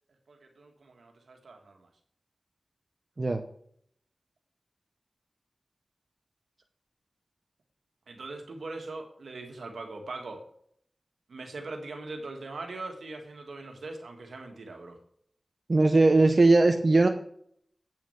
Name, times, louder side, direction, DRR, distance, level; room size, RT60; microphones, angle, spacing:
voice 1, 0.3-1.9 8.1-10.4 11.3-15.0, right 3 dB, 85° right, 3 dB, 1.8 m, -41 dB
voice 2, 15.7-17.1, right 2 dB, 55° right, 5 dB, 0.8 m, -20 dB
8.9 x 6.0 x 5.8 m, 0.65 s
cardioid pair, 40°, 0 cm